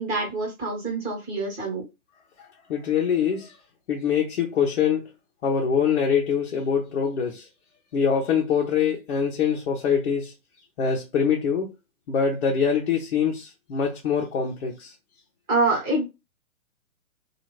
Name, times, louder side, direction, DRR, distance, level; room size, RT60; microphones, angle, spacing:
voice 1, 0.0-1.8 15.5-16.1, right 2 dB, 20° right, 1.4 m, -25 dB
voice 2, 2.7-3.5 3.9-5.1 5.4-7.5 7.9-10.3 10.8-11.7 12.1-14.9, left 7 dB, 50° left, 0.8 m, -24 dB
2.9 x 2.5 x 3.1 m
figure-of-eight pair, 130°, 43 cm